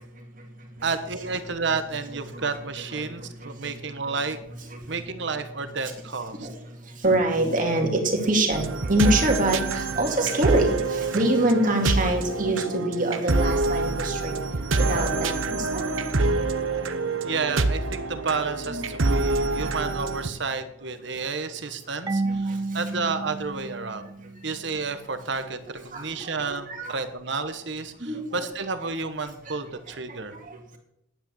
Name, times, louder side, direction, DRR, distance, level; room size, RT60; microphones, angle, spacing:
voice 1, 0.8-4.4 4.9-6.5 17.2-24.1 24.4-30.3, right 4 dB, 65° right, 10 dB, 1.2 m, -31 dB
voice 2, 2.9-3.7 4.1-4.2 4.7-4.8 6.3-6.6 7.0-15.8 18.7-19.7 22.2-22.6 25.9-27.0 28.0-28.5 29.5-29.6 30.1-30.6, right 1 dB, 45° right, 2 dB, 2.4 m, -26 dB
sound 1, 8.5-20.3, right 3 dB, 85° right, 0.9 m, -26 dB
sound 2, 14.1-19.5, left 2 dB, 80° left, 4.4 m, -47 dB
Marimba xylophone / Wood, 22.1-24.8, right 3 dB, 20° right, 0.4 m, -31 dB
10.5 x 9.1 x 7.1 m, 0.80 s
head